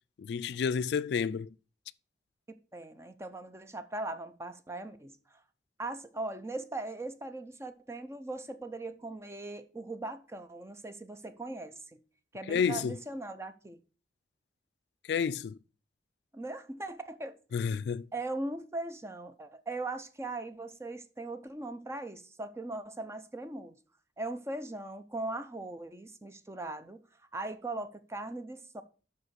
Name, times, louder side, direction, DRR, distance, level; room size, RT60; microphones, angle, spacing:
voice 1, 0.2-1.5 12.5-13.0 15.1-15.6 17.5-18.1, left 6 dB, 70° left, 0.3 m, -30 dB
voice 2, 2.5-5.4 5.8-12.0 12.3-13.8 16.3-17.4 18.1-23.8 24.2-27.0 27.3-28.8, right 2 dB, 15° right, 0.5 m, -39 dB
5.9 x 5.0 x 6.2 m
head